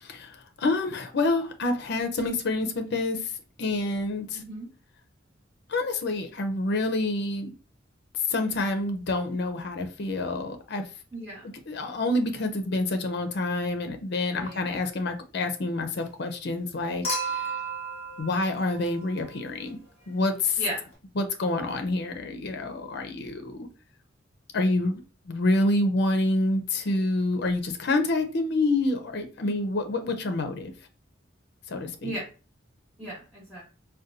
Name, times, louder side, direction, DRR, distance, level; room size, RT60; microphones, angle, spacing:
voice 1, 0.0-3.2 3.6-4.4 5.7-7.5 8.3-10.8 11.7-17.5 18.2-19.8 20.1-20.6 21.2-23.6 24.5-30.7 31.7-32.1, left 2 dB, 60° left, 0.5 m, -27 dB
voice 2, 4.3-4.7 11.1-11.5 14.3-14.6 20.6-20.8 29.4-29.6 32.0-32.2 33.0-33.6, right 1 dB, 5° left, 1.3 m, -36 dB
Human group actions / Chink clink / Liquid, 17.0-19.4 20.9-21.0, right 2 dB, 30° left, 1.3 m, -33 dB
4.0 x 2.2 x 2.6 m
head